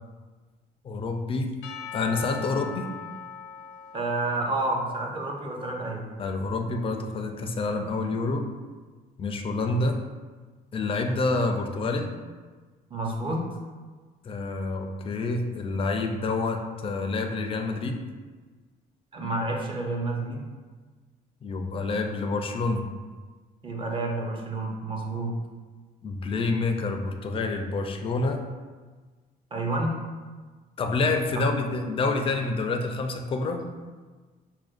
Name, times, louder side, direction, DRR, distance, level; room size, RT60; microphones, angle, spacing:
voice 1, 0.8-1.5 1.9-2.9 6.2-8.5 9.2-10.0 10.7-12.1 14.2-18.0 21.4-22.9 26.0-28.4 30.8-33.6, left 3 dB, 35° left, 4 dB, 0.4 m, -28 dB
Percussion / Church bell, 1.6-5.8, left 7 dB, 85° left, 0.6 m, -41 dB
voice 2, 3.9-6.1 12.9-13.4 19.1-20.4 23.6-25.3 29.5-29.9 31.3-31.4, right 2 dB, 30° right, 0 dB, 0.7 m, -29 dB
5.9 x 2.2 x 2.5 m, 1.4 s
cardioid pair, 110°, 17 cm